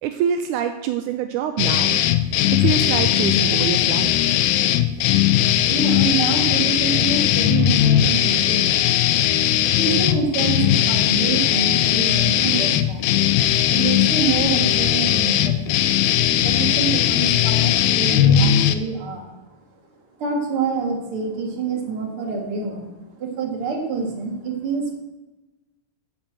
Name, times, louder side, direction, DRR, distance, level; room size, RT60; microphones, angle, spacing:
voice 1, 0.0-2.0 2.5-4.2, right 9 dB, 80° right, 7 dB, 1.8 m, -25 dB
sound 1, 1.6-18.7, left 11 dB, 80° left, 2.2 m, -18 dB
voice 2, 5.7-8.8 9.7-13.1 13.4-15.8 16.3-19.3 20.2-22.9 23.1-24.9, right 4 dB, 45° right, 2 dB, 2.3 m, -27 dB
10.5 x 6.7 x 7.5 m, 1.1 s
omnidirectional pair, 4.1 m